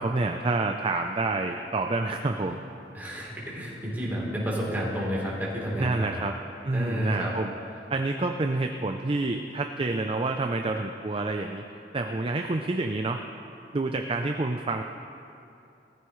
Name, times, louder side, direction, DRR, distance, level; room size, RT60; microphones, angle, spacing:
voice 1, 0.0-2.6 5.8-6.3 6.6-7.6 7.9-11.6 11.9-13.2 13.7-14.8, right 2 dB, 30° right, 4 dB, 0.5 m, -28 dB
voice 2, 2.9-6.1 6.7-7.3, equal, 10° right, -6 dB, 3.4 m, -30 dB
19.5 x 14.5 x 3.2 m, 2.7 s
head